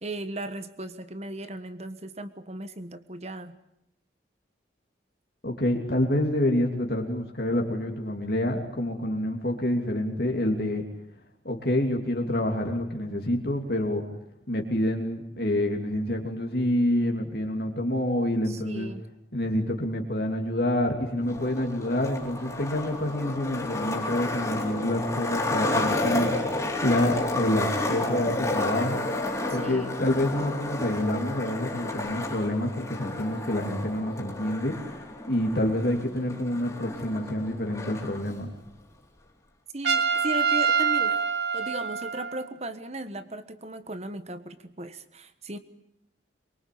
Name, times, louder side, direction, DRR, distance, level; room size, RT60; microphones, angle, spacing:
voice 1, 0.0-3.6 18.4-19.1 29.6-29.9 39.7-41.2 41.5-45.6, right 2 dB, 35° right, 11 dB, 1.3 m, -36 dB
voice 2, 5.4-10.8 11.4-14.0 14.5-18.9 19.3-26.4 26.8-29.0 29.5-34.7 35.3-38.5, left 1 dB, 55° left, 2 dB, 3.0 m, -27 dB
Skateboard, 21.2-38.2, left 2 dB, 15° left, 3.9 m, -31 dB
Trumpet, 39.8-42.5, right 5 dB, 70° right, 1.9 m, -25 dB
23.5 x 23.5 x 8.6 m, 0.76 s
head